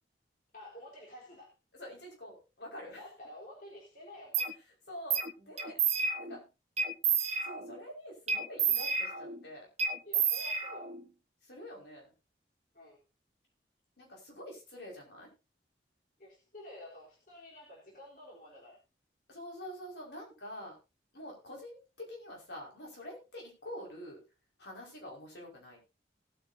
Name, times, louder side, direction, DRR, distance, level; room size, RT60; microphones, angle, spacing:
voice 1, 0.5-1.5 2.8-4.5 10.0-11.0 12.7-13.0 16.2-18.8, left 1 dB, 45° left, -3 dB, 4.1 m, -51 dB
voice 2, 1.7-3.0 4.9-5.8 6.2-6.4 7.4-9.7 11.4-12.1 14.0-15.3 19.3-20.7 21.1-24.2 24.6-25.8, left 1 dB, 70° left, -1 dB, 5.3 m, -46 dB
sound 1, 4.3-4.5 5.1-5.3 5.6-6.4 6.8-7.8 8.3-9.4 9.8-11.0, right 6 dB, 35° right, 1.1 m, -30 dB
19.0 x 8.9 x 2.8 m, 0.27 s
head